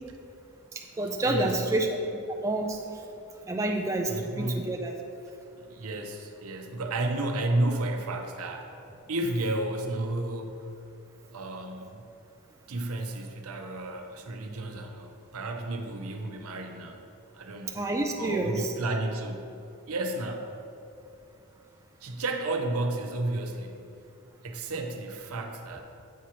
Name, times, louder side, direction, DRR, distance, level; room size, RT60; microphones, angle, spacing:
voice 1, 0.7-1.9 2.4-2.8 3.4-4.9 17.7-18.7, right 2 dB, 15° right, 1 dB, 0.3 m, -28 dB
voice 2, 1.2-1.8 4.1-4.8 5.6-8.7 9.1-10.7 11.3-12.0 12.7-17.0 17.3-17.8 18.2-19.5 19.9-20.5 22.0-23.8 24.4-25.8, right 2 dB, 80° right, 4 dB, 0.7 m, -32 dB
8.1 x 2.9 x 6.2 m, 2.6 s
head